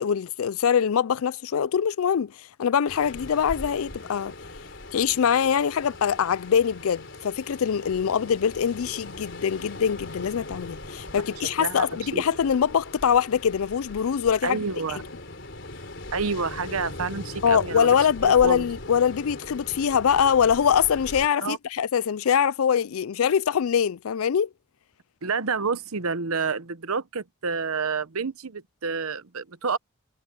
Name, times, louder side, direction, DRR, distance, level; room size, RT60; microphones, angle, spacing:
voice 1, 0.0-2.3 2.6-4.3 4.9-14.6 15.0-15.1 17.4-24.5, left 7 dB, 80° left, 0.4 m, -23 dB
Ocean, 2.9-21.3, left 2 dB, 55° left, 4.4 m, -40 dB
voice 2, 14.4-15.0 16.1-18.0 18.2-18.6 21.4-21.6 25.2-29.8, right 4 dB, 80° right, 1.0 m, -29 dB
head